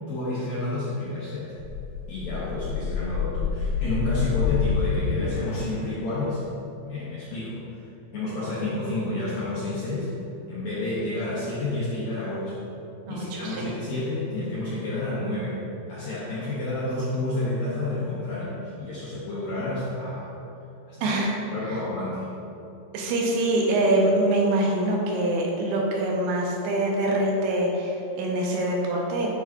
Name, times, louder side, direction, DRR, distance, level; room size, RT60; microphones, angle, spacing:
voice 1, 0.1-1.5 2.1-6.4 6.8-7.9 8.1-10.1 10.5-12.6 13.1-15.6 15.9-20.3 20.9-21.1 21.5-22.3, left 2 dB, 75° left, -9 dB, 1.7 m, -30 dB
sound 1, 1.6-5.9, left 6 dB, 90° left, 2.5 m, -28 dB
voice 2, 13.1-13.7 21.0-21.4 21.7-21.8 22.9-29.3, right 1 dB, 80° right, -1 dB, 2.7 m, -24 dB
9.1 x 4.6 x 2.4 m, 2.9 s
omnidirectional pair, 4.4 m